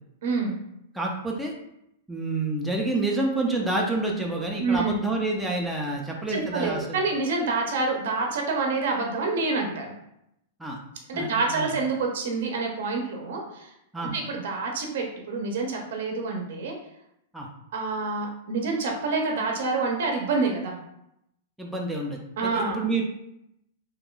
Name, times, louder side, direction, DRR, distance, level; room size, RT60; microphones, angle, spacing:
voice 1, 0.2-0.6 4.6-5.0 6.3-10.0 11.1-13.7 14.0-16.7 17.7-20.7 22.4-22.8, right 3 dB, 65° right, 2 dB, 0.6 m, -27 dB
voice 2, 0.9-1.5 2.1-7.0 10.6-10.8 11.1-11.7 13.9-14.1 17.3-17.5 21.6-23.0, right 2 dB, ahead, -2 dB, 0.3 m, -28 dB
2.8 x 2.3 x 3.7 m, 0.80 s
supercardioid pair, 160°, 0 cm